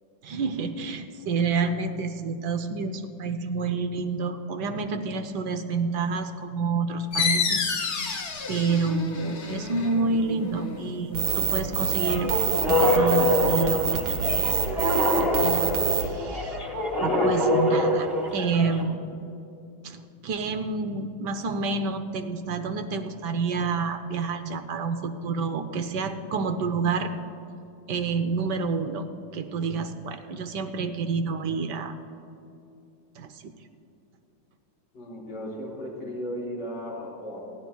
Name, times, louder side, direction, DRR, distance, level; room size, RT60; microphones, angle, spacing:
voice 1, 0.2-8.2 8.5-12.3 12.6-16.6 17.0-19.0 19.8-27.1 27.9-29.1 29.3-31.9 33.2-33.4, right 4 dB, 70° right, 8 dB, 1.2 m, -29 dB
sound 1, 7.1-12.4, left 5 dB, 50° left, 0.9 m, -31 dB
sound 2, 11.1-16.0, right 6 dB, 90° right, 2.0 m, -26 dB
sound 3, 12.0-18.8, left 1 dB, 20° left, 1.7 m, -25 dB
voice 2, 34.9-37.5, equal, 85° left, -5 dB, 4.5 m, -35 dB
29.5 x 11.0 x 2.3 m, 2.6 s
omnidirectional pair, 2.1 m